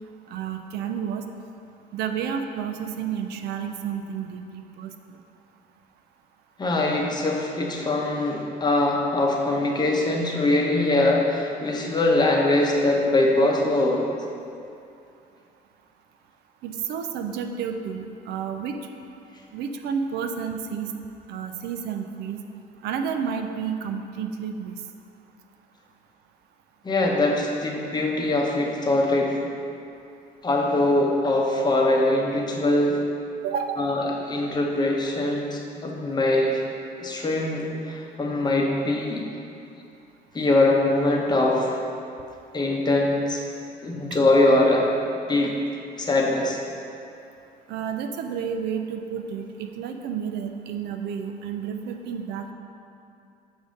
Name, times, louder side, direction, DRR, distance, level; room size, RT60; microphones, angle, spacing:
voice 1, 0.3-1.3 1.9-5.2 16.6-18.8 19.5-20.9 21.3-22.4 22.8-24.8 33.4-33.9 44.1-44.2 47.7-52.5, right 7 dB, 75° right, 6 dB, 0.4 m, -31 dB
voice 2, 6.6-14.0 26.8-29.4 30.4-33.0 33.8-36.6 37.0-39.2 40.3-41.8 42.5-43.4 43.8-44.9 45.3-45.5 46.0-46.6, left 2 dB, 25° left, -1 dB, 0.8 m, -22 dB
7.8 x 2.7 x 5.0 m, 2.6 s
cardioid pair, 110°, 17 cm